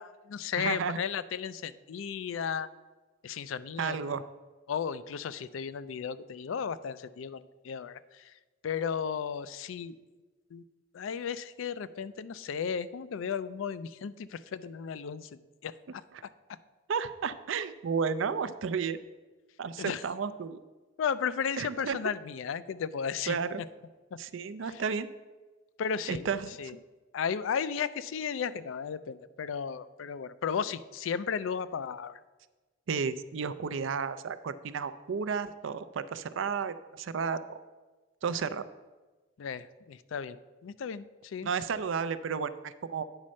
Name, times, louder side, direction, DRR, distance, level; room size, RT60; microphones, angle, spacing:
voice 1, 0.0-2.7 3.2-4.0 4.7-8.2 8.6-10.0 10.5-10.6 10.9-16.3 19.8-20.0 21.0-23.4 24.7-24.8 25.8-26.3 26.6-26.7 27.1-32.2 39.4-40.4 40.6-41.5, left 7 dB, 80° left, 15 dB, 0.4 m, -34 dB
voice 2, 0.6-1.0 3.8-4.2 16.9-19.0 19.6-20.6 21.6-22.0 23.3-23.6 24.2-25.1 26.1-26.5 32.9-37.4 38.2-38.6 41.4-43.0, right 6 dB, 75° right, 13 dB, 0.4 m, -32 dB
9.0 x 4.2 x 6.3 m, 1.2 s
head